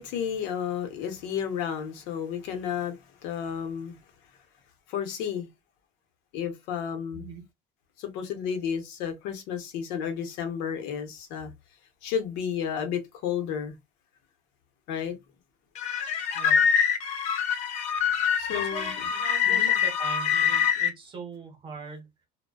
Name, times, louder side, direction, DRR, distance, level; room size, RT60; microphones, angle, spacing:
voice 1, 0.0-4.0 4.9-5.5 6.3-7.3 8.0-11.5 12.0-13.7 14.9-15.2 18.4-18.9 19.4-19.7, left 8 dB, 85° left, 0.8 m, -32 dB
sound 1, 15.8-20.9, left 8 dB, 40° left, 0.4 m, -25 dB
voice 2, 16.3-16.7 18.5-22.1, right 4 dB, 30° right, 0.7 m, -41 dB
2.5 x 2.1 x 2.3 m
cardioid pair, 175°, 18 cm